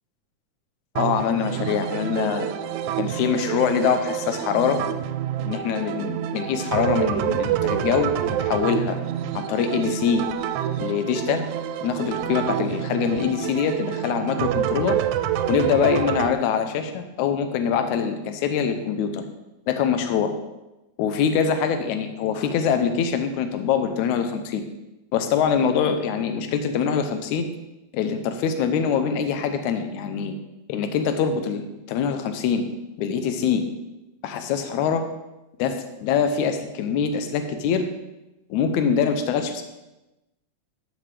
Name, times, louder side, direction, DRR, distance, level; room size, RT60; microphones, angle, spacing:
voice 1, 1.0-2.5 3.0-4.8 5.4-9.0 9.4-10.2 10.8-11.5 11.8-15.0 15.5-19.2 19.7-20.3 21.0-24.6 25.1-27.5 27.9-30.3 30.7-32.6 33.0-33.6 34.2-35.1 35.6-37.9 38.5-39.6, left 7 dB, 85° left, 7 dB, 2.2 m, -24 dB
sound 1, 1.0-16.3, right 10 dB, 85° right, 2.0 m, -27 dB
13.0 x 7.1 x 3.4 m, 0.99 s
omnidirectional pair, 3.4 m